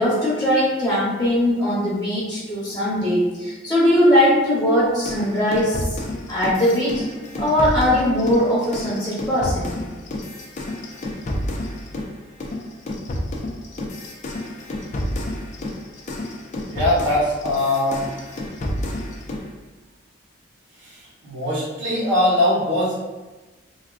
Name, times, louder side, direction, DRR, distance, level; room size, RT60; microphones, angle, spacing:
voice 1, 0.0-6.0 6.3-7.0 7.4-9.7, equal, 15° left, -9 dB, 0.8 m, -20 dB
sound 1, 5.0-12.1 12.4-19.5, left 1 dB, 40° left, 0.4 m, -30 dB
voice 2, 16.7-18.0 21.2-22.9, left 1 dB, 85° right, -8 dB, 1.4 m, -21 dB
3.5 x 2.4 x 2.4 m, 1.2 s
head